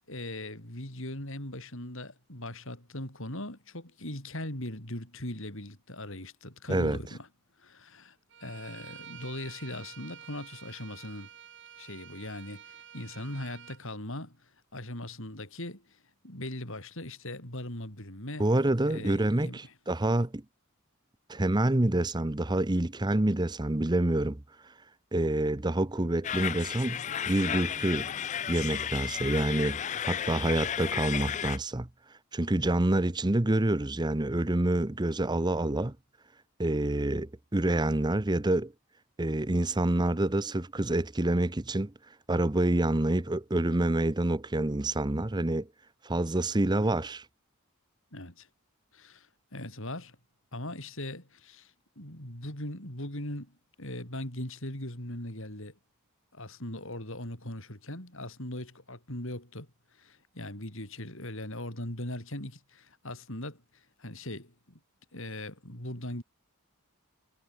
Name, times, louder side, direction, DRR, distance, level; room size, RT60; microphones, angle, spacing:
voice 1, 0.1-7.3 7.6-11.3 11.8-16.0 16.2-18.5 18.9-19.7 48.1-48.5 48.9-50.2 50.5-55.8 56.3-59.7 59.9-64.8 65.1-66.2, left 1 dB, 60° left, 6.6 m, -40 dB
Bowed string instrument, 8.3-13.8, right 9 dB, 55° right, 7.0 m, -49 dB
voice 2, 18.4-20.4 21.3-24.4 25.1-28.1 28.5-31.9 32.3-35.9 36.6-38.7 39.2-41.9 42.3-45.7 46.0-47.2, right 1 dB, 20° right, 0.8 m, -27 dB
sound 1, 26.2-31.6, left 9 dB, 35° left, 0.4 m, -33 dB
head